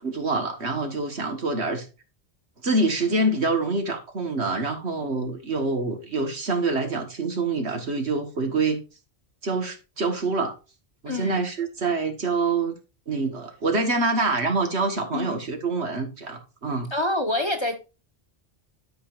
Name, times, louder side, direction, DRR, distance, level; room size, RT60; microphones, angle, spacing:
voice 1, 0.0-1.9 2.6-8.8 9.4-10.5 11.0-12.7 13.1-16.9, right 3 dB, 70° right, 1.9 m, -26 dB
voice 2, 11.0-11.4 15.1-15.4 16.9-17.7, left 1 dB, 25° left, 1.3 m, -26 dB
12.5 x 5.2 x 2.5 m
omnidirectional pair, 1.1 m